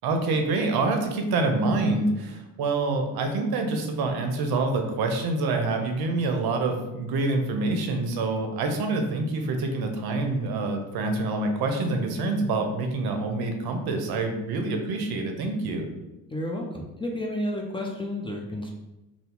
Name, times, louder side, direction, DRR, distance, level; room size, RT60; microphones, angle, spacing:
voice 1, 0.0-15.9, right 3 dB, 65° right, 4 dB, 0.7 m, -26 dB
voice 2, 16.3-18.7, left 1 dB, 15° left, 0 dB, 0.5 m, -31 dB
2.8 x 2.0 x 3.6 m, 1.0 s
supercardioid pair, 60°, 40 cm